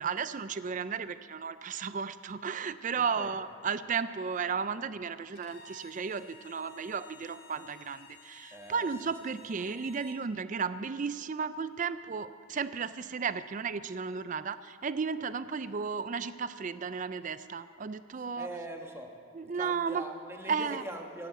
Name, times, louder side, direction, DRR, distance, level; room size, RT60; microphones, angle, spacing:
voice 1, 0.0-18.5 19.3-20.0 20.5-20.8, right 5 dB, 40° right, 14 dB, 0.4 m, -34 dB
voice 2, 3.0-3.3 8.5-9.1 18.4-19.2 19.5-21.3, right 1 dB, 10° right, 2 dB, 1.2 m, -42 dB
Bowed string instrument, 5.3-10.2, left 3 dB, 50° left, 1.9 m, -54 dB
14.5 x 11.0 x 8.0 m, 2.3 s
head